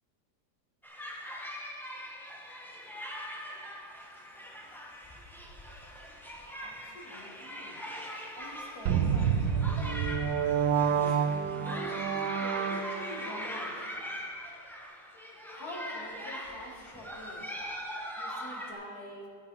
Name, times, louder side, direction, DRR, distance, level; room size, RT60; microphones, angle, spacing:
sound 1, 0.8-18.7, equal, ahead, 0.8 m, -41 dB
voice 1, 6.6-7.8 8.3-10.1 11.0-11.2 11.5-13.8 15.5-17.5 17.9-19.3, left 1 dB, 55° left, -1 dB, 2.3 m, -46 dB
sound 2, 8.9-13.3, right 7 dB, 80° right, 1.3 m, -28 dB
11.5 x 8.6 x 5.5 m, 2.2 s
omnidirectional pair, 1.9 m